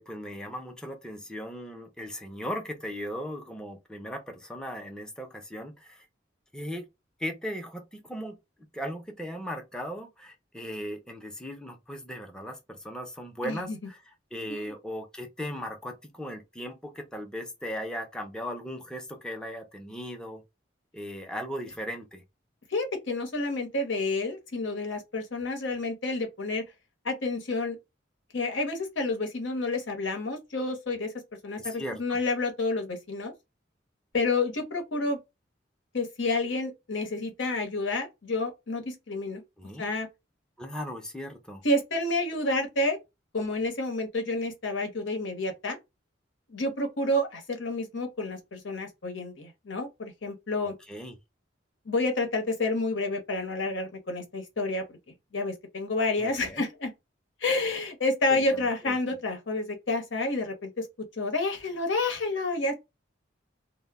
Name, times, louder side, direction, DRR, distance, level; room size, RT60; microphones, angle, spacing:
voice 1, 0.0-6.0 6.5-6.8 7.2-8.4 8.7-14.0 14.3-20.4 20.9-22.2 31.6-32.2 39.6-39.9 40.6-41.6 50.9-51.1 56.2-56.7 58.3-58.9, equal, 5° left, 0.4 m, -37 dB
voice 2, 13.4-13.8 14.5-14.7 22.7-26.6 27.0-27.8 28.3-31.1 31.4-33.3 34.1-35.2 35.9-39.4 39.8-40.1 41.6-43.0 43.3-45.8 46.5-50.7 51.9-54.8 55.3-56.9 57.4-60.9 61.1-62.7, left 2 dB, 90° left, 0.8 m, -29 dB
2.0 x 2.0 x 3.4 m
head